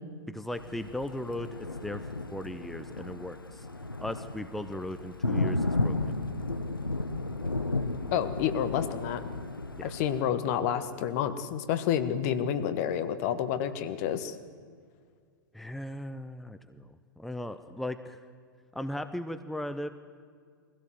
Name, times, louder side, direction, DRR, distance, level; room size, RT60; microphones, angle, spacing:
voice 1, 0.3-2.0 2.3-3.7 4.0-6.0 9.8-9.9 15.5-16.9 17.2-18.2 18.7-19.9, left 1 dB, ahead, 10 dB, 0.8 m, -37 dB
Thunder, 0.5-10.2, left 2 dB, 90° left, 1.0 m, -34 dB
voice 2, 8.1-9.2 9.8-14.3, left 9 dB, 45° left, 11 dB, 1.5 m, -29 dB
23.0 x 16.5 x 7.8 m, 2.1 s
figure-of-eight pair, 100°, 11 cm